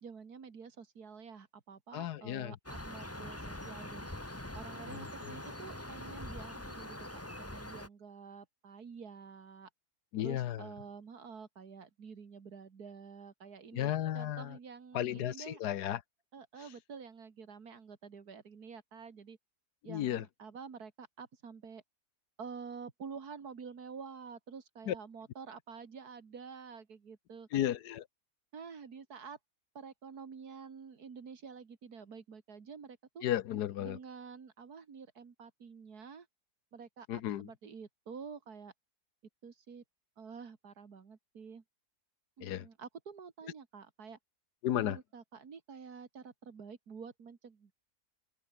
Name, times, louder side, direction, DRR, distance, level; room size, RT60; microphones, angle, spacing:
voice 1, 0.0-4.1 4.5-7.0 7.4-9.7 10.2-15.6 16.3-19.4 19.8-21.8 22.4-27.7 28.5-29.4 29.7-33.2 33.8-36.3 36.7-38.7 39.4-39.8 40.2-41.6 42.4-44.2 44.7-47.7, right 6 dB, 70° right, 2.5 m, -49 dB
voice 2, 1.9-2.6 4.9-5.4 10.1-10.6 13.7-14.6 14.9-16.0 19.9-20.2 24.9-25.0 27.5-28.0 33.2-34.0 37.1-37.5 42.4-42.7 44.6-45.0, left 12 dB, 85° left, 1.4 m, -34 dB
sound 1, 2.7-7.9, left 1 dB, 10° left, 1.8 m, -44 dB
open air
omnidirectional pair, 1.7 m